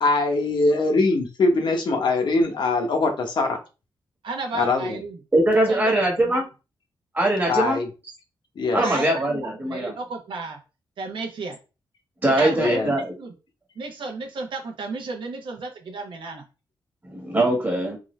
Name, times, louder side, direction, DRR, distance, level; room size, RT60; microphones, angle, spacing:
voice 1, 0.0-3.6 4.5-5.0 7.5-7.9 8.6-8.8 12.6-12.9, left 3 dB, 65° left, 3 dB, 0.8 m, -22 dB
voice 2, 4.2-5.2 5.5-6.4 8.7-10.6 11.0-11.6 12.4-13.3 13.8-16.4, right 3 dB, 75° right, 3 dB, 0.9 m, -33 dB
voice 3, 5.3-6.5 7.1-7.8 8.7-9.9 12.2-13.1 17.1-18.0, right 1 dB, 20° right, 0 dB, 1.4 m, -21 dB
3.8 x 2.6 x 3.1 m, 0.31 s
wide cardioid pair, 130°, 8 cm